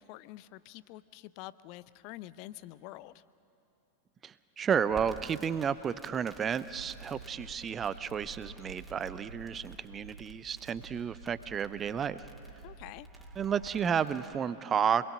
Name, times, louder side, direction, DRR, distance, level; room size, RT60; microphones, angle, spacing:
voice 1, 0.0-3.2 12.6-13.1, left 16 dB, 45° left, 18 dB, 0.5 m, -47 dB
voice 2, 4.2-12.3 13.4-15.1, right 7 dB, 25° right, 15 dB, 0.6 m, -32 dB
Crackle, 4.9-14.3, right 1 dB, 5° right, 2.5 m, -55 dB
sound 1, 6.6-13.7, right 3 dB, 85° right, 1.3 m, -50 dB
27.5 x 21.5 x 6.7 m, 3.0 s
figure-of-eight pair, 90°, 0 cm